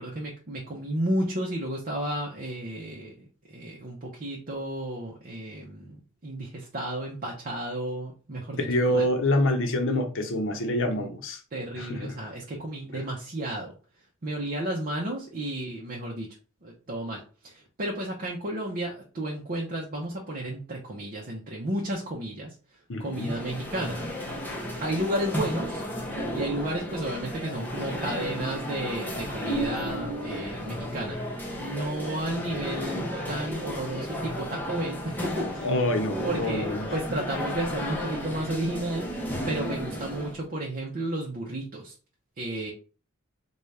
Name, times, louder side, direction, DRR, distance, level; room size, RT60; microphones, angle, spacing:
voice 1, 0.0-3.1 3.5-9.1 10.9-11.1 11.5-13.7 14.2-16.3 16.6-17.5 17.8-22.5 23.0-24.0 24.8-25.8 26.3-31.2 31.6-35.7 36.2-41.9 42.4-42.7, right 1 dB, 40° right, 0.7 m, -32 dB
voice 2, 8.6-11.4 11.8-12.2 12.9-13.0 22.9-23.3 35.6-36.9, left 1 dB, 60° left, 0.7 m, -26 dB
sound 1, 23.1-40.4, equal, 10° left, 0.7 m, -33 dB
4.0 x 2.3 x 3.2 m
head